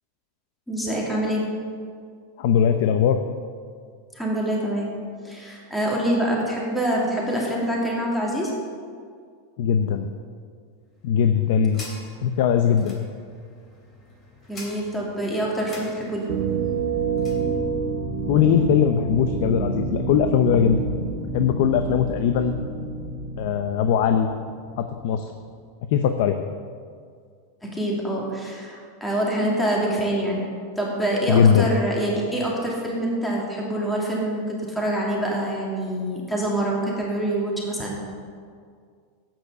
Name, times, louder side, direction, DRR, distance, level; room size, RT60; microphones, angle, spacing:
voice 1, 0.7-1.5 4.1-4.9 5.2-8.5 14.5-16.3 27.6-30.4 30.8-38.0, right 1 dB, 5° left, -3 dB, 2.6 m, -25 dB
voice 2, 2.4-3.2 9.6-10.1 11.0-11.8 12.2-12.9 18.3-20.9 21.3-22.5 23.4-24.3 24.8-25.3 25.9-26.4 31.3-31.7, left 8 dB, 60° left, 8 dB, 0.7 m, -20 dB
sound 1, 10.9-17.5, left 2 dB, 25° left, 2.9 m, -45 dB
sound 2, 16.3-25.0, right 4 dB, 45° right, 1.7 m, -28 dB
12.0 x 9.1 x 6.7 m, 2.1 s
supercardioid pair, 150°, 0 cm